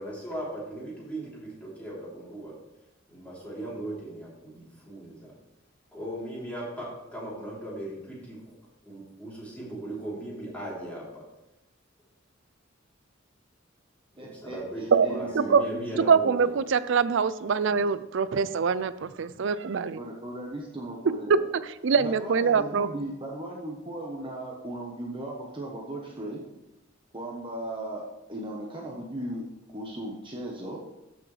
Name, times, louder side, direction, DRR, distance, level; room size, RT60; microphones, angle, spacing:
voice 1, 0.0-2.5 3.1-5.3 5.9-8.4 8.8-11.3 14.1-16.5 17.8-17.9, right 1 dB, 10° left, -7 dB, 3.4 m, -38 dB
voice 2, 14.2-16.1 19.9-21.5 21.9-26.4 27.1-29.4 29.7-30.8, right 1 dB, 25° right, -2 dB, 1.1 m, -37 dB
voice 3, 14.9-15.7 16.1-20.0 21.8-22.9, right 6 dB, 65° right, 15 dB, 0.4 m, -24 dB
13.5 x 6.1 x 3.3 m, 0.93 s
head